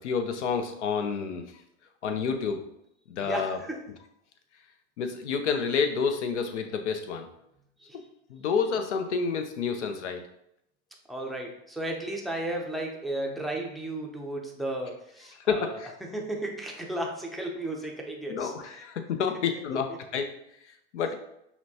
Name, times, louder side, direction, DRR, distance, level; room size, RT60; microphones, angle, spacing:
voice 1, 0.0-1.6 2.0-2.6 3.1-3.6 5.0-7.3 8.3-10.2 15.4-15.9 18.3-20.3 20.9-21.1, left 6 dB, 90° left, 7 dB, 0.7 m, -29 dB
voice 2, 3.2-3.8 7.8-8.0 11.1-18.5, right 1 dB, ahead, -1 dB, 0.4 m, -34 dB
5.7 x 2.2 x 2.7 m, 0.77 s
hypercardioid pair, 115°, 34 cm